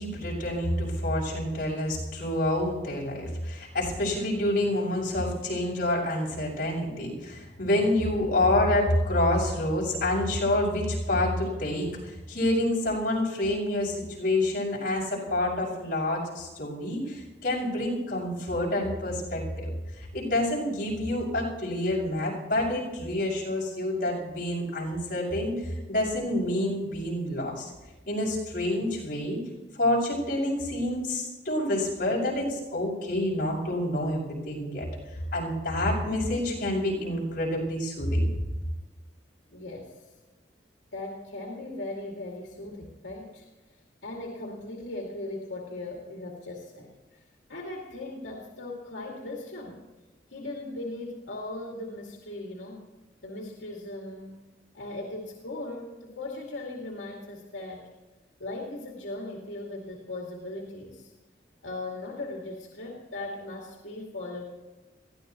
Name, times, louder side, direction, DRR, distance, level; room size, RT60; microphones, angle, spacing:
voice 1, 0.0-19.7 20.0-27.7 28.1-29.4 29.7-34.8 35.1-38.3, left 1 dB, 50° left, -5 dB, 6.1 m, -28 dB
voice 2, 39.5-40.1 40.9-43.4 44.0-47.2 47.5-49.8 50.3-52.8 53.2-54.4 54.7-57.9 58.4-61.1 61.6-64.5, left 2 dB, 85° left, -2 dB, 2.5 m, -38 dB
21.5 x 15.5 x 3.1 m, 1.2 s
head